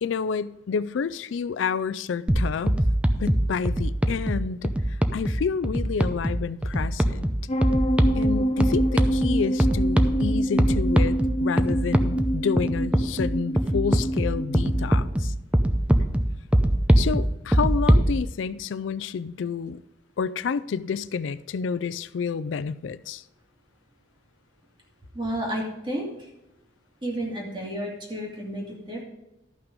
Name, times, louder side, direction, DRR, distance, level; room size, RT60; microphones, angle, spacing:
voice 1, 0.0-2.8 3.2-7.3 8.1-15.3 17.0-19.8 20.2-23.2, left 6 dB, 85° left, 0.4 m, -29 dB
sound 1, 2.3-18.1, right 1 dB, 5° right, 0.5 m, -23 dB
sound 2, 7.5-14.9, equal, 35° left, 0.8 m, -26 dB
voice 2, 25.1-26.3 27.0-29.0, right 1 dB, 25° right, 2.5 m, -31 dB
12.5 x 5.9 x 5.3 m
head